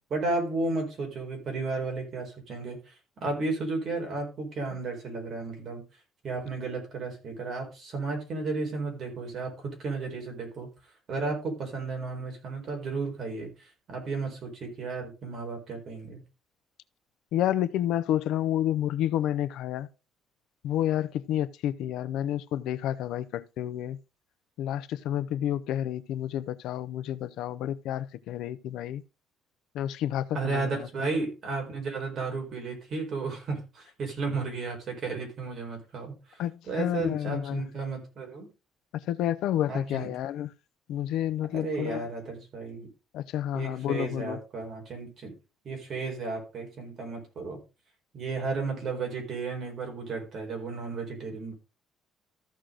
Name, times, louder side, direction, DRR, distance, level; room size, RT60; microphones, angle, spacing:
voice 1, 0.1-2.9 3.2-5.8 6.2-10.7 11.1-16.2 30.3-38.5 39.7-40.1 41.5-42.9 43.5-45.3 45.6-47.6 48.1-51.5, right 3 dB, 35° right, 4.4 m, -33 dB
voice 2, 17.3-19.9 20.6-24.0 24.6-29.0 29.7-31.1 36.4-37.6 38.9-40.5 40.9-42.1 43.1-44.4, left 11 dB, 70° left, 0.6 m, -30 dB
14.0 x 6.3 x 3.8 m
cardioid pair, 170°, 0 cm